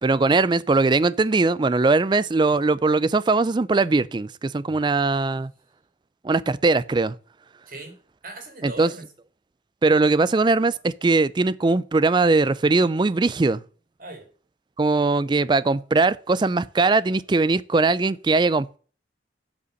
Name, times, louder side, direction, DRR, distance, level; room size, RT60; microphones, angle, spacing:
voice 1, 0.0-5.5 6.2-7.1 8.6-8.9 9.8-13.6 14.8-18.8, right 3 dB, 25° right, 0.4 m, -20 dB
voice 2, 7.7-8.0 8.2-9.1 14.0-14.3, right 2 dB, 50° right, 2.2 m, -39 dB
8.1 x 5.1 x 6.4 m
head